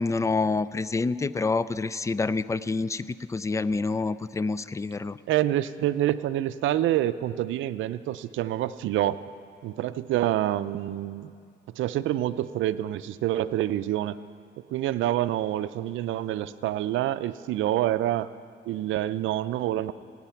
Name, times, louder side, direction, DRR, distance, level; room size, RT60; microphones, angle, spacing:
voice 1, 0.0-5.2, left 3 dB, 15° left, 17 dB, 0.3 m, -27 dB
voice 2, 5.3-9.2 9.6-11.3 11.8-14.2 14.7-18.3 18.7-19.9, right 13 dB, 80° right, 14 dB, 0.5 m, -27 dB
17.0 x 9.3 x 5.8 m, 2.4 s
cardioid pair, 90°, 20 cm